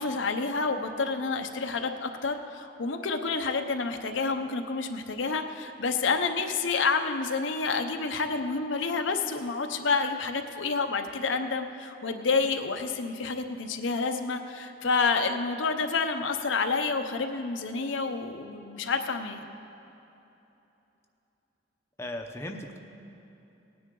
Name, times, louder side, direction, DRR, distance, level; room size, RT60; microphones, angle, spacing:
voice 1, 0.0-19.4, left 4 dB, 85° left, 6 dB, 0.7 m, -29 dB
voice 2, 22.0-22.8, left 1 dB, 15° left, 2 dB, 0.6 m, -37 dB
18.0 x 9.5 x 3.8 m, 3.0 s
head